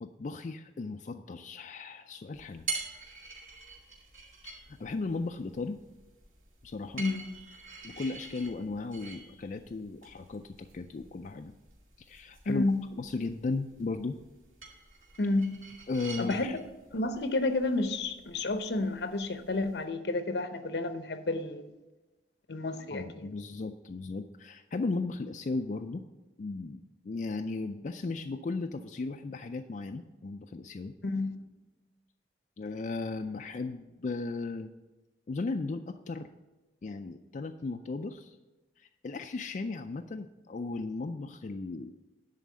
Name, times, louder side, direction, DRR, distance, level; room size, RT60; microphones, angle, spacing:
voice 1, 0.0-2.7 4.4-5.8 6.6-7.0 7.8-11.5 12.1-12.7 13.0-14.2 15.9-16.6 22.9-26.0 26.4-30.9 32.6-34.7 35.3-36.3 36.8-38.4 38.8-42.1, left 3 dB, 45° left, 0.4 m, -36 dB
sound 1, 2.3-19.8, right 4 dB, 45° right, 3.0 m, -46 dB
voice 2, 12.5-12.8 15.2-15.6 16.2-16.6 16.9-21.7 22.5-23.3 31.0-31.4, left 2 dB, 70° left, 0.8 m, -30 dB
10.5 x 4.1 x 7.5 m
head